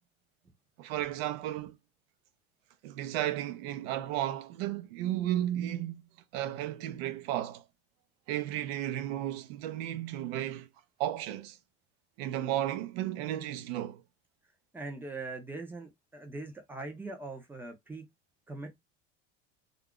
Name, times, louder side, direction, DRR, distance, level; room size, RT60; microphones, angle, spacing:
voice 1, 0.8-1.8 2.8-7.6 8.3-10.7 11.0-11.6 12.2-14.0, right 12 dB, 80° right, 0.6 m, -34 dB
voice 2, 14.7-18.0 18.5-18.8, right 3 dB, 5° right, 0.4 m, -41 dB
2.4 x 2.1 x 3.6 m
cardioid pair, 165°, 30 cm